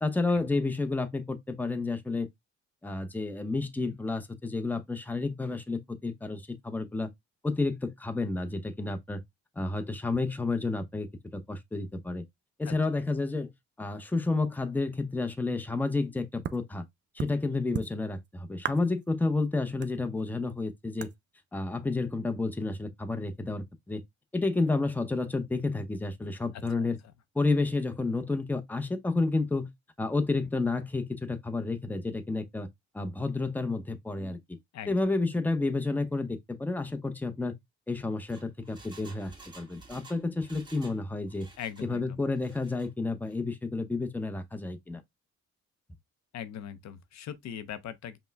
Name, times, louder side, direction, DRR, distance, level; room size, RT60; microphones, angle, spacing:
voice 1, 0.0-2.3 2.8-7.1 7.4-9.2 9.6-12.2 12.6-13.5 13.8-16.8 17.1-21.1 21.5-24.0 24.3-27.0 27.3-29.7 30.0-32.7 32.9-34.6 34.9-37.5 37.9-41.5 41.9-45.0, left 3 dB, 5° left, 0.7 m, -30 dB
sound 1, 16.4-16.6 17.2-17.3 17.7-18.3 18.6-19.1 19.4-19.5 19.8-20.6 21.0-21.2, right 8 dB, 40° right, 0.5 m, -36 dB
voice 2, 26.5-26.9 34.7-34.9 41.6-42.2 46.3-48.2, left 9 dB, 65° left, 0.7 m, -40 dB
Engine, 38.3-41.0 41.3-41.9 42.3-42.9 43.2-43.3, right 3 dB, 15° right, 1.6 m, -52 dB
5.4 x 2.2 x 3.4 m
cardioid pair, 90°, 30 cm